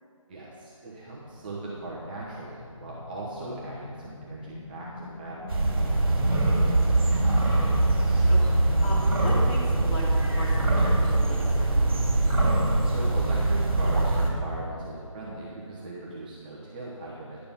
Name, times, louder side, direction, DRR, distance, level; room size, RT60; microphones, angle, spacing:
voice 1, 0.3-5.5 12.8-17.4, right 2 dB, 15° right, -6 dB, 0.8 m, -39 dB
sound 1, 1.0-14.3, left 2 dB, 60° left, 1.0 m, -40 dB
sound 2, 5.5-14.3, right 2 dB, 40° right, 2.2 m, -23 dB
voice 2, 6.2-7.4 7.8-10.0 10.3-11.8, left 1 dB, 15° left, -6 dB, 1.4 m, -39 dB
10.5 x 6.9 x 5.3 m, 2.3 s
figure-of-eight pair, 160°, 17 cm